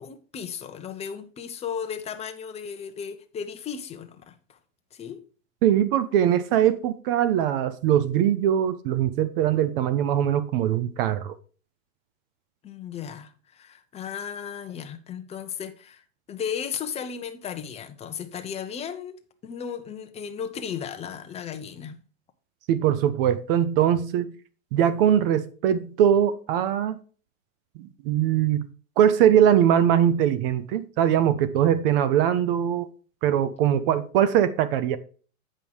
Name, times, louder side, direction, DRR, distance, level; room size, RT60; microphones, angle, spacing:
voice 1, 0.0-4.6 4.9-5.2 12.6-16.0 16.3-22.0, left 7 dB, 15° left, 0.8 m, -35 dB
voice 2, 5.6-11.3 22.7-24.3 24.7-27.0 27.8-28.7 29.0-32.9 33.2-35.0, right 10 dB, 45° right, 0.7 m, -21 dB
8.6 x 5.5 x 4.6 m
hypercardioid pair, 140°, 40 cm